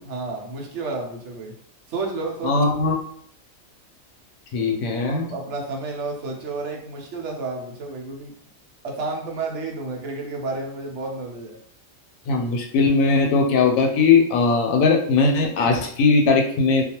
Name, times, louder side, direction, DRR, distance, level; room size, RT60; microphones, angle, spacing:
voice 1, 0.1-1.5 1.9-2.6 5.1-8.3 8.8-11.6, right 3 dB, 65° right, 0 dB, 0.8 m, -31 dB
voice 2, 2.4-2.9 4.5-5.3 12.3-16.8, left 4 dB, 85° left, 3 dB, 1.0 m, -19 dB
2.3 x 2.3 x 2.8 m, 0.63 s
omnidirectional pair, 1.4 m